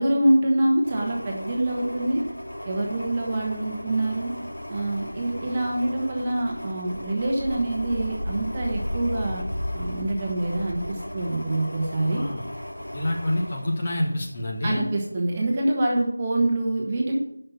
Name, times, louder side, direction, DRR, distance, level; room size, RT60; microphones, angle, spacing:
voice 1, 0.0-2.2 2.6-4.3 4.7-9.4 9.7-12.2 14.6-17.2, right 1 dB, 20° right, -2 dB, 1.3 m, -25 dB
sound 1, 0.8-14.5 15.0-15.1, equal, 80° left, 3.5 m, -35 dB
voice 2, 12.1-12.4 12.9-14.9, left 1 dB, 25° left, -1 dB, 1.5 m, -27 dB
8.5 x 5.7 x 5.8 m, 0.74 s
figure-of-eight pair, 170°, 0 cm